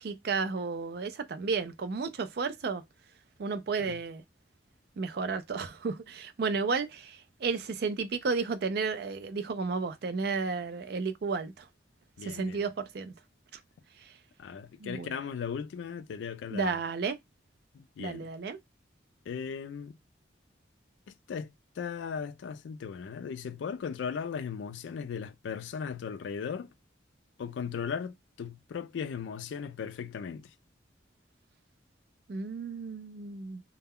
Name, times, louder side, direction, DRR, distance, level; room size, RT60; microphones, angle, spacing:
voice 1, 0.0-2.8 3.4-4.2 5.0-11.6 12.2-13.1 14.8-15.1 16.5-17.2 18.0-18.6 32.3-33.6, right 4 dB, 55° right, 0.4 m, -32 dB
voice 2, 12.2-12.6 14.4-16.8 17.7-18.3 19.3-20.0 21.1-26.7 27.4-30.5, left 6 dB, 70° left, 0.3 m, -37 dB
2.2 x 2.1 x 3.4 m
head